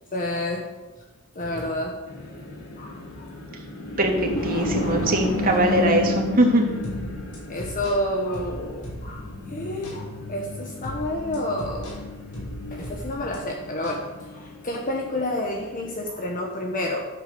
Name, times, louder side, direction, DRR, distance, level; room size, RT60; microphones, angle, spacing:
voice 1, 0.1-0.7 1.3-2.0 2.8-3.3 7.5-11.9 12.7-14.1 14.3-17.1, left 1 dB, 40° left, 1 dB, 1.3 m, -29 dB
sound 1, 2.1-16.1, left 2 dB, 65° left, 3.4 m, -33 dB
voice 2, 4.4-6.7, right 1 dB, 40° right, 0 dB, 2.7 m, -21 dB
sound 2, 6.8-9.4 9.8-10.0 10.8-13.4 13.8-14.0, equal, 90° left, 5.6 m, -37 dB
14.0 x 8.2 x 6.9 m, 1.2 s
head